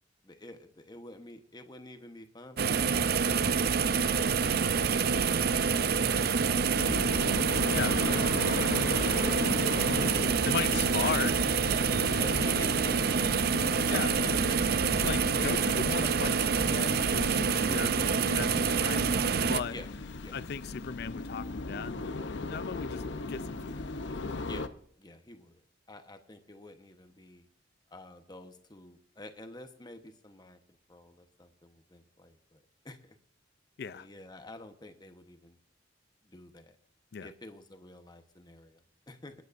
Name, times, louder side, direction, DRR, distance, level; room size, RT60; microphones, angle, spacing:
voice 1, 0.2-2.9 3.6-7.5 8.0-9.6 9.9-10.5 10.8-11.2 12.0-14.6 19.7-19.9 20.2-20.4 24.4-24.7 25.0-25.6 25.9-27.5 27.9-30.6 30.9-33.2 33.9-35.6 36.2-36.8 37.2-39.3, left 1 dB, 25° left, 1.1 m, -48 dB
sound 1, 2.6-19.6, right 6 dB, 55° right, 0.5 m, -27 dB
sound 2, 6.8-24.7, left 3 dB, 80° left, 0.8 m, -37 dB
voice 2, 7.7-8.0 10.4-11.4 13.9-14.2 15.0-19.1 19.5-19.8 20.3-23.0 23.3-23.8 33.8-34.1 37.1-37.3, left 6 dB, 60° left, 0.4 m, -36 dB
27.5 x 9.5 x 2.6 m
head